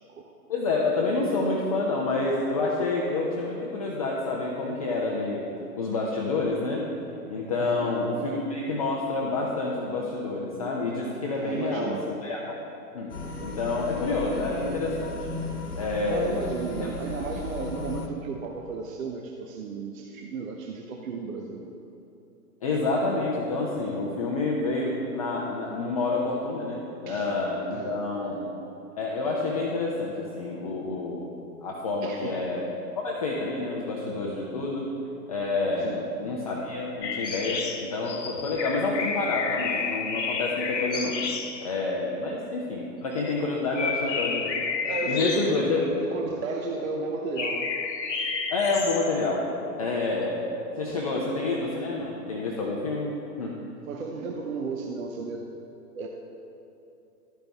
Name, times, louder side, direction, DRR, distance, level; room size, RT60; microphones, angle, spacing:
voice 1, 0.5-5.5 5.8-6.9 7.3-12.6 12.9-13.1 13.4-15.1 15.8-16.4 22.6-28.5 29.0-31.3 31.6-32.7 33.0-34.9 35.3-41.2 41.6-44.5 45.1-45.9 48.5-49.4 49.8-50.5 50.8-53.6, left 3 dB, 25° left, -3 dB, 0.4 m, -28 dB
voice 2, 7.5-7.9 11.4-12.1 16.1-21.7 27.1-27.3 27.7-28.0 32.0-32.4 35.8-36.0 44.8-47.7 53.9-55.5 55.9-56.1, right 4 dB, 55° right, 2 dB, 0.8 m, -34 dB
sound 1, 13.1-18.1, left 2 dB, 70° left, 1.2 m, -35 dB
sound 2, 37.0-41.7 43.2-43.4 43.7-45.9 47.4-49.2, left 5 dB, 90° left, 1.0 m, -31 dB
12.5 x 5.1 x 3.4 m, 2.9 s
hypercardioid pair, 130°, 49 cm